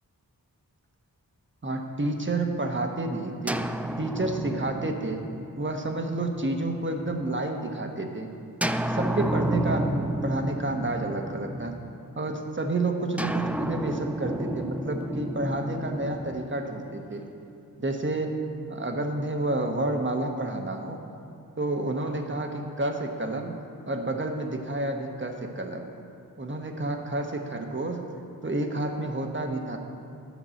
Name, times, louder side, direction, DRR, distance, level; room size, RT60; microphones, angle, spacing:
voice 1, 1.6-3.6 4.0-5.2 5.6-8.3 8.8-11.7 12.2-17.2 17.8-18.3 18.7-21.0 21.6-23.6 23.9-25.9 26.4-28.1 28.4-29.8, right 2 dB, 30° right, 3 dB, 1.2 m, -30 dB
sound 1, 3.5-7.3 8.6-12.2 13.2-17.3, right 1 dB, 5° right, 0.4 m, -32 dB
11.5 x 5.9 x 7.7 m, 2.7 s
wide cardioid pair, 70°, 37 cm